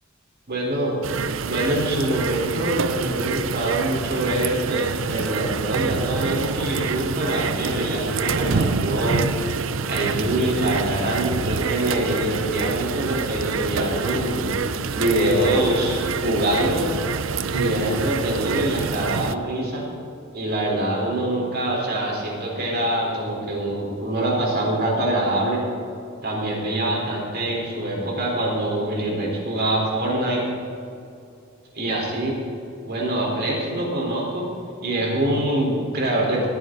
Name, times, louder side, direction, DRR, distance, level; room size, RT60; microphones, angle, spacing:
voice 1, 0.5-1.0 1.4-9.3 9.9-14.5 14.9-16.9 17.5-19.9 20.3-25.6 26.2-30.5 31.7-32.4 32.9-34.5 34.8-36.5, right 1 dB, 50° right, -2 dB, 4.4 m, -24 dB
sound 1, 1.0-19.3, right 5 dB, 65° right, 0.6 m, -26 dB
20.0 x 15.0 x 4.1 m, 2.6 s
head